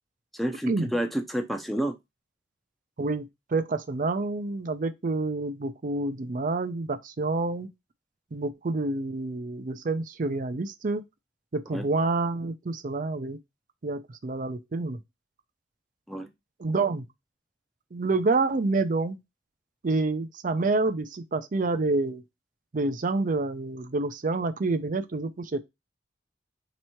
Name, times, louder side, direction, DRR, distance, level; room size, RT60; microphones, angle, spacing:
voice 1, 0.3-1.9 11.7-11.8 16.1-16.3, right 1 dB, ahead, 0.6 m, -29 dB
voice 2, 3.0-7.7 8.3-11.0 11.5-13.4 13.8-15.0 16.6-17.0 17.9-19.2 19.8-22.2 22.7-25.6, right 3 dB, 45° right, 0.5 m, -28 dB
3.3 x 3.0 x 4.3 m
head